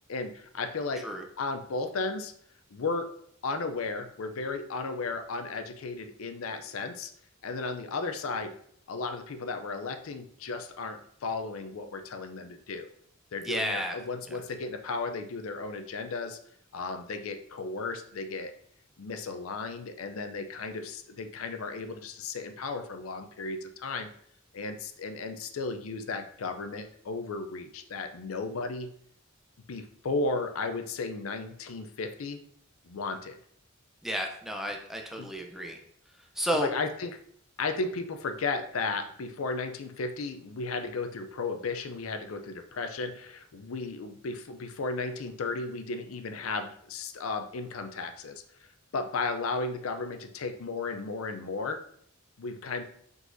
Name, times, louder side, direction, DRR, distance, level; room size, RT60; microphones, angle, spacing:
voice 1, 0.1-1.1 1.4-2.3 2.7-3.1 3.4-7.1 7.4-8.5 8.9-12.9 13.3-16.4 16.7-18.5 19.0-24.1 24.5-28.9 29.7-32.4 32.8-33.4 35.2-35.3 36.5-37.2 37.6-48.4 48.9-51.8 52.4-52.8, left 3 dB, 90° left, 7 dB, 0.5 m, -34 dB
voice 2, 13.4-14.0 34.0-35.8 36.4-36.7, equal, ahead, 2 dB, 0.5 m, -31 dB
4.9 x 4.0 x 2.6 m, 0.63 s
head